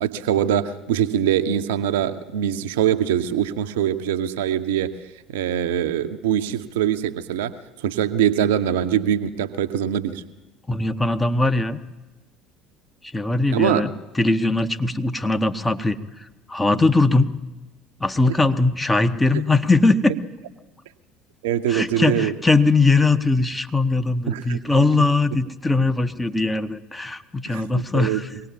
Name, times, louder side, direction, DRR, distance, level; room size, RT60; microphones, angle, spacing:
voice 1, 0.0-4.9 5.3-7.5 7.8-10.2 13.5-13.8 21.4-22.3 24.3-25.0 27.5-28.4, right 10 dB, 65° right, 10 dB, 0.6 m, -23 dB
voice 2, 10.7-11.8 13.1-13.9 14.2-16.0 16.5-17.4 18.0-20.1 21.7-28.3, left 3 dB, 15° left, 10 dB, 0.8 m, -20 dB
24.0 x 18.5 x 2.8 m, 1.1 s
figure-of-eight pair, 60°, 0 cm